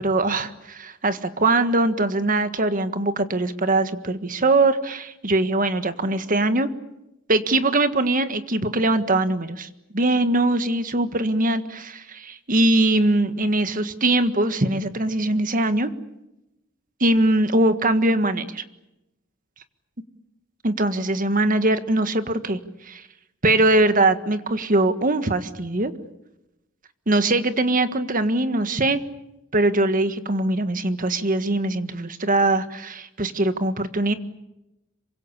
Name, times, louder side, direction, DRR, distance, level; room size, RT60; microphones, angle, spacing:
voice 1, 0.0-6.7 7.3-15.9 17.0-18.6 20.6-22.6 22.8-23.0 23.4-25.9 27.1-29.0 29.5-34.1, right 2 dB, 40° right, 10 dB, 1.6 m, -21 dB
27.0 x 24.5 x 8.4 m, 0.91 s
head